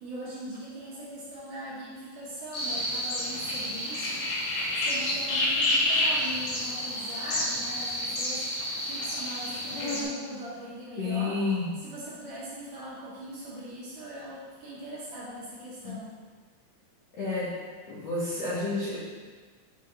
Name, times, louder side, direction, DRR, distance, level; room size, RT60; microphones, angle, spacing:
voice 1, 0.0-4.5 4.8-11.3 11.8-16.1, right 1 dB, 55° right, -9 dB, 2.8 m, -41 dB
sound 1, 2.5-10.0, left 1 dB, 65° left, 2.6 m, -29 dB
voice 2, 11.0-11.8 15.8-15.9 17.2-17.6 17.9-19.0, left 3 dB, 90° left, -9 dB, 1.3 m, -30 dB
8.9 x 4.1 x 3.3 m, 1.5 s
omnidirectional pair, 4.8 m